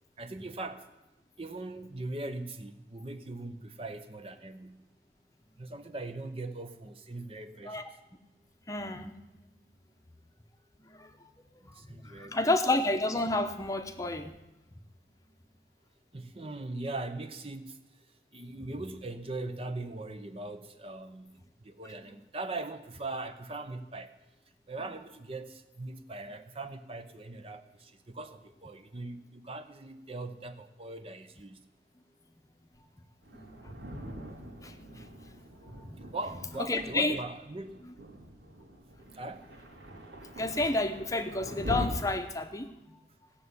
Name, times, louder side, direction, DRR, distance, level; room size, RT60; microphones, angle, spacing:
voice 1, 0.2-0.9 1.4-4.8 5.6-7.9 11.6-12.4 16.1-17.8 18.3-21.3 21.6-24.1 24.7-31.6 36.1-37.8 39.1-39.5, right 2 dB, 35° right, 9 dB, 0.8 m, -40 dB
voice 2, 8.7-9.2 11.0-11.1 12.2-14.3 18.5-18.7 34.6-35.0 36.6-37.2 37.9-38.0 40.4-42.7, left 2 dB, 20° left, 7 dB, 0.9 m, -30 dB
Thunder, 33.2-41.9, equal, 90° right, 2.9 m, -43 dB
16.0 x 6.9 x 9.5 m, 0.98 s
head